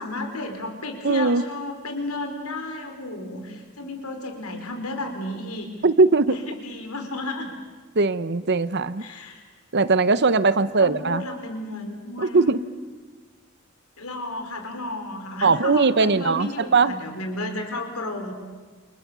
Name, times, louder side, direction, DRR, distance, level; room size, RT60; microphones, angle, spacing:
voice 1, 0.0-5.7 6.3-7.5 9.0-9.4 10.5-12.5 14.0-18.3, left 2 dB, 90° left, 5 dB, 4.7 m, -33 dB
voice 2, 1.0-1.4 5.8-6.4 7.9-9.0 9.7-11.2 12.2-12.6 15.4-17.0, right 3 dB, 50° right, 15 dB, 0.9 m, -20 dB
30.0 x 28.0 x 6.9 m, 1.4 s
head